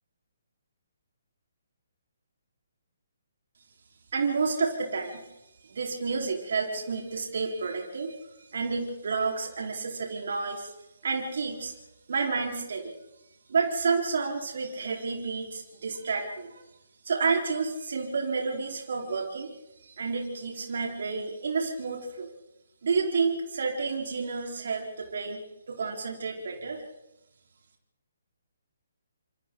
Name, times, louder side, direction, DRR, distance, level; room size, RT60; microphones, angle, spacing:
voice 1, 4.1-5.3 5.6-10.7 11.0-11.8 12.1-12.9 13.5-16.7 17.0-19.5 19.8-22.3 22.8-25.4 25.7-26.8, right 4 dB, 60° right, 0 dB, 4.5 m, -30 dB
29.5 x 27.0 x 4.0 m, 0.95 s
figure-of-eight pair, 135°, 0 cm